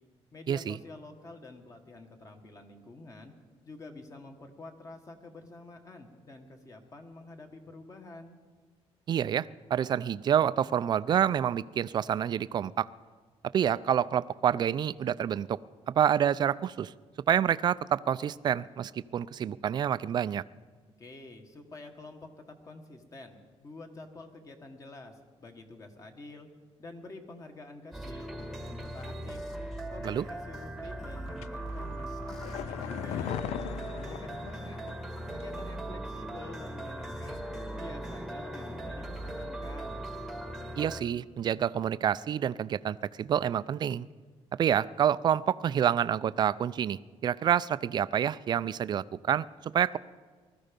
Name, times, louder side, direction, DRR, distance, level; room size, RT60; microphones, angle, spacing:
voice 1, 0.3-3.3 3.6-8.4 21.0-26.5 26.8-29.4 29.9-34.8 35.3-37.4 37.7-40.1, left 2 dB, 30° left, 5 dB, 1.5 m, -48 dB
voice 2, 9.1-12.9 13.5-15.6 15.9-16.9 17.3-20.4 30.0-30.2 40.8-44.1 44.6-50.0, right 9 dB, 40° right, 17 dB, 0.4 m, -28 dB
sound 1, 27.9-41.0, right 1 dB, ahead, 1.2 m, -39 dB
sound 2, 31.4-35.1 35.4-35.5, left 12 dB, 90° left, 0.4 m, -39 dB
19.5 x 13.5 x 5.2 m, 1.5 s
cardioid pair, 155°, 11 cm